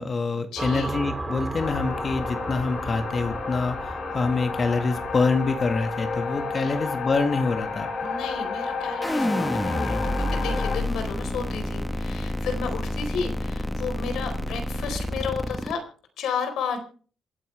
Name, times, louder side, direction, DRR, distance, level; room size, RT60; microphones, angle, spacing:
voice 1, 0.0-7.9, left 4 dB, 40° left, 7 dB, 1.8 m, -26 dB
voice 2, 0.5-0.9 6.6-6.8 8.0-15.8 16.2-16.8, left 5 dB, 80° left, 7 dB, 4.3 m, -32 dB
sound 1, 0.6-9.8, right 2 dB, 20° right, 4.4 m, -37 dB
sound 2, 1.6-10.8, left 4 dB, 60° left, 4.0 m, -31 dB
sound 3, 9.0-15.7, left 1 dB, 5° left, 1.5 m, -28 dB
27.0 x 9.1 x 3.4 m, 0.40 s
cardioid pair, 90°, 0 cm